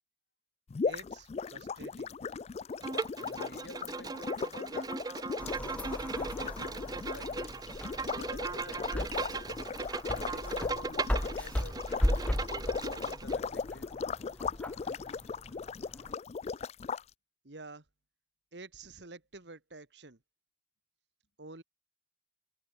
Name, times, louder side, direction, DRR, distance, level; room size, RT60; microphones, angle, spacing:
sound 1, 0.7-17.0, left 5 dB, 35° left, 0.3 m, -38 dB
voice 1, 0.8-2.1 17.4-17.8 18.5-20.2 21.4-21.6, right 3 dB, 80° right, 2.0 m, -49 dB
Bowed string instrument, 2.8-13.3, right 4 dB, 20° right, 0.5 m, -38 dB
voice 2, 3.2-4.9 5.6-6.8 7.1-7.5 8.1-9.5 10.3-11.8 12.5-13.9, left 2 dB, 85° left, 7.2 m, -50 dB
sound 2, 5.4-16.1, equal, 10° left, 0.8 m, -37 dB
open air
head